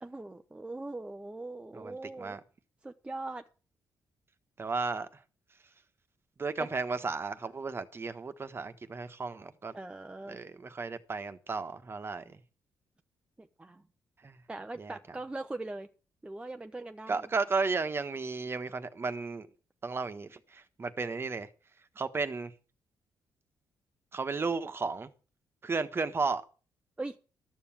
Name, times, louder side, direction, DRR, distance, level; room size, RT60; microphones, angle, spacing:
voice 1, 0.0-2.4 2.8-3.4 6.6-6.7 9.7-10.4 13.4-13.8 14.5-15.9 16.2-17.3 27.0-27.2, right 2 dB, 15° right, 0.8 m, -41 dB
voice 2, 1.7-2.4 4.6-5.1 6.4-9.7 10.3-12.4 14.2-14.4 14.8-15.0 17.1-19.5 19.8-21.5 22.0-22.5 24.1-25.1 25.6-26.4, right 4 dB, 35° right, 1.4 m, -34 dB
12.5 x 7.1 x 7.4 m
cardioid pair, 85°, 7 cm